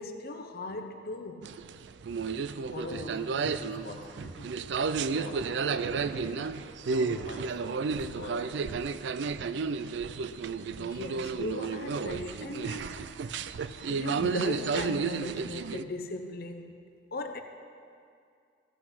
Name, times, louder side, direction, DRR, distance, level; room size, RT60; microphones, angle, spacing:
voice 1, 0.0-1.5 10.8-13.4 13.9-16.8 17.1-17.4, left 2 dB, 60° left, 6 dB, 0.7 m, -38 dB
sound 1, 1.4-15.8, right 5 dB, 70° right, 0.4 m, -32 dB
voice 2, 2.7-4.5 5.0-6.5 6.9-8.8, left 1 dB, 75° left, 2 dB, 1.4 m, -44 dB
15.0 x 8.2 x 5.7 m, 2.3 s
head